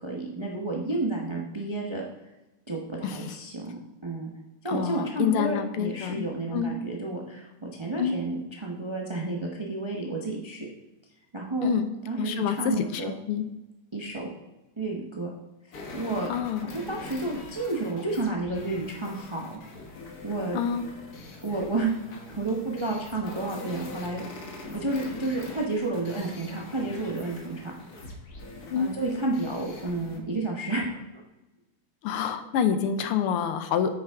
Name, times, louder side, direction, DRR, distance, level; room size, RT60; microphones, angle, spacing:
voice 1, 0.0-2.0 2.7-4.3 4.6-10.7 11.3-11.7 12.0-13.1 13.9-14.3 14.8-15.3 15.9-16.3 16.6-19.4 20.2-20.6 21.4-24.2 24.7-28.1 28.8-31.2, right 2 dB, 45° right, -1 dB, 0.3 m, -31 dB
voice 2, 3.0-3.4 4.7-6.2 6.5-6.7 8.0-8.1 11.6-11.9 12.1-13.4 16.3-16.7 20.5-20.9 28.7-28.9 32.0-34.0, left 8 dB, 85° left, 9 dB, 1.6 m, -27 dB
sound 1, 15.7-30.2, left 2 dB, 50° left, 1.5 m, -43 dB
9.1 x 6.7 x 3.6 m, 1.0 s
omnidirectional pair, 2.4 m